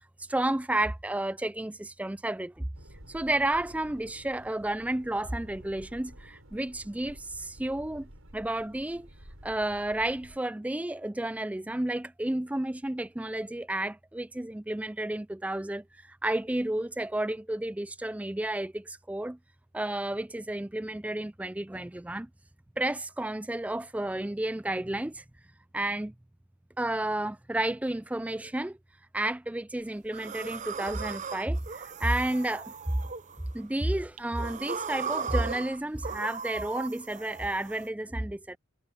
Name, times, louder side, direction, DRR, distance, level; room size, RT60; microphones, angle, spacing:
voice 1, 0.3-2.7 3.1-9.1 9.4-19.4 19.7-22.3 22.8-25.2 25.7-26.1 26.8-28.8 29.1-33.0 33.5-38.6, right 1 dB, 5° right, 0.3 m, -31 dB
sound 1, 2.7-10.4, equal, 85° right, 5.9 m, -51 dB
sound 2, 30.1-33.7 34.2-37.9, right 6 dB, 35° right, 0.7 m, -38 dB
head